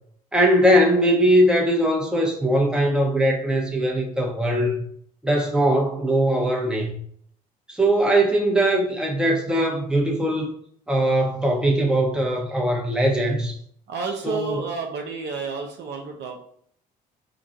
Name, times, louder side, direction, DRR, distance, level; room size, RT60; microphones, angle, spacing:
voice 1, 0.3-4.8 5.2-7.0 7.7-10.5 10.9-13.5 14.2-14.6, right 1 dB, 5° right, 0 dB, 1.0 m, -20 dB
voice 2, 13.9-16.4, right 4 dB, 55° right, 2 dB, 0.7 m, -30 dB
4.8 x 2.3 x 2.7 m, 0.65 s
hypercardioid pair, 55°, 21 cm